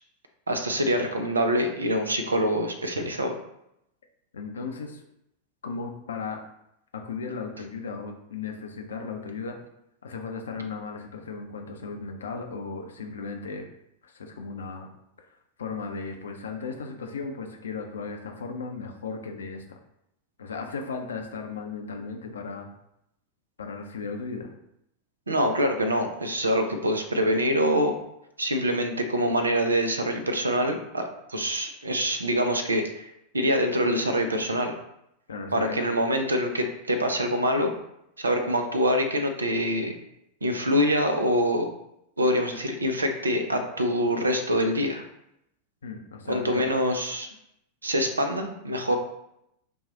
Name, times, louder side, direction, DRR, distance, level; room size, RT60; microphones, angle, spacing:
voice 1, 0.5-3.3 25.3-27.9 28.4-33.0 33.3-34.7 35.5-37.7 38.2-39.9 40.4-41.7 42.2-45.0 46.3-47.3 47.8-49.0, equal, 75° right, 6 dB, 0.6 m, -25 dB
voice 2, 4.3-5.0 5.6-6.4 6.9-9.6 10.0-13.7 14.0-14.9 15.2-15.3 15.6-19.6 20.4-22.7 23.6-24.5 35.3-35.8 45.8-46.7, left 4 dB, 70° left, 3 dB, 0.6 m, -36 dB
5.8 x 2.4 x 3.9 m, 0.80 s
figure-of-eight pair, 90°, 0 cm